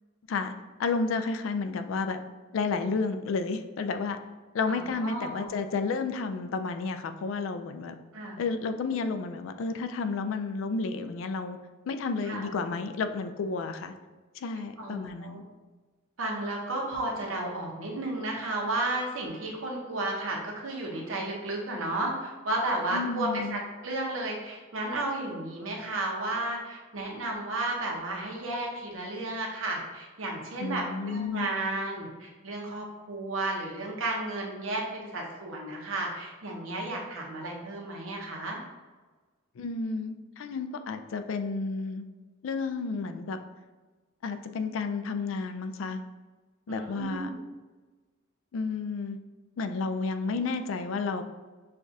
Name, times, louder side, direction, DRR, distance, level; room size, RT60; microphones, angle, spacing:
voice 1, 0.8-2.2 2.5-4.2 4.5-7.9 8.4-11.6 11.9-13.9 14.4-15.4 22.9-23.6 30.6-31.5 39.6-42.1 42.4-43.4 44.2-46.0 46.7-47.3 48.5-49.2 49.6-51.2, left 4 dB, 75° left, 9 dB, 0.3 m, -31 dB
voice 2, 4.7-5.5 8.1-8.4 12.2-12.4 14.8-15.4 16.2-38.6 46.7-47.4, right 2 dB, 85° right, -1 dB, 0.9 m, -33 dB
6.4 x 2.3 x 2.7 m, 1.3 s
head